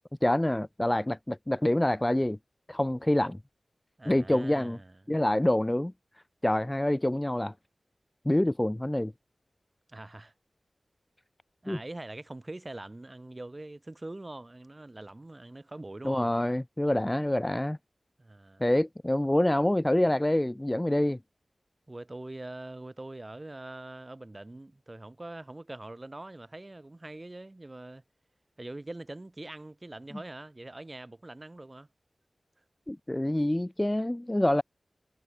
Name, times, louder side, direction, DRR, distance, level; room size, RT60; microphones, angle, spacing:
voice 1, 0.2-2.4 2.7-3.4 4.1-4.8 5.1-5.9 6.4-7.5 8.3-9.1 11.7-11.8 16.0-17.8 18.6-21.2 32.9-34.6, left 1 dB, 15° left, 0.3 m, -26 dB
voice 2, 4.0-5.0 9.9-10.3 11.6-16.3 18.2-18.6 21.9-28.0 28.6-31.9, right 2 dB, 30° right, 7.3 m, -43 dB
wide cardioid pair, 70°, 0 cm